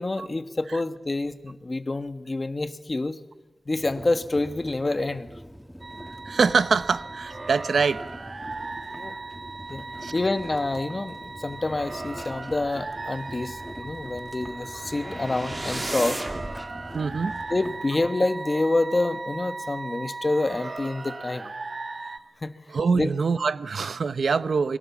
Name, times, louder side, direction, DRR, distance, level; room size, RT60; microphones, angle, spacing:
voice 1, 0.0-3.2 3.7-5.3 8.9-9.2 9.7-9.8 10.1-16.2 17.5-21.5 22.4-22.6 22.9-23.1, left 2 dB, 35° left, 10 dB, 1.4 m, -27 dB
sound 1, 3.7-17.8, equal, ahead, 1.2 m, -43 dB
sound 2, 5.8-22.2, right 3 dB, 50° right, 1.1 m, -38 dB
voice 2, 6.3-8.1 10.0-10.1 16.9-17.4 22.7-24.8, right 5 dB, 85° right, 15 dB, 0.8 m, -24 dB
sound 3, 14.4-16.6, right 2 dB, 30° right, 2.7 m, -34 dB
29.0 x 23.0 x 7.2 m, 1.1 s
wide cardioid pair, 105°, 0 cm